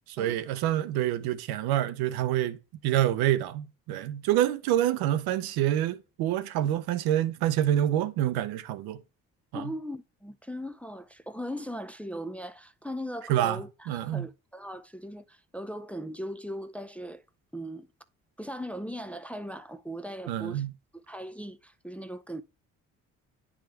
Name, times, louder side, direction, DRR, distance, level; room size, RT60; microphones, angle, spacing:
voice 1, 0.1-2.6 2.8-9.0 9.5-9.7 13.3-14.3 20.3-20.7, right 12 dB, 80° right, 0.6 m, -27 dB
voice 2, 9.5-17.2 17.5-17.9 18.4-20.6 20.9-22.4, equal, 5° left, 0.5 m, -39 dB
9.0 x 3.6 x 3.3 m
supercardioid pair, 60°, 37 cm